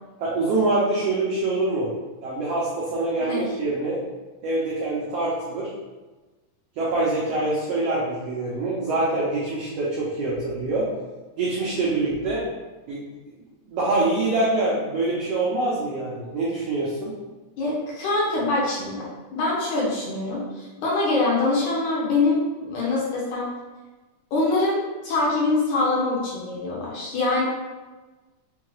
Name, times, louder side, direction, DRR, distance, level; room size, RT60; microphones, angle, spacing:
voice 1, 0.2-1.9 2.2-4.0 4.4-5.7 6.8-10.9 11.4-12.4 12.9-13.0 13.6-17.1, right 2 dB, 85° right, -6 dB, 1.4 m, -25 dB
voice 2, 17.6-19.1 19.3-23.5 24.3-27.4, left 2 dB, 70° left, -5 dB, 2.3 m, -24 dB
6.0 x 2.3 x 3.0 m, 1.2 s
omnidirectional pair, 3.8 m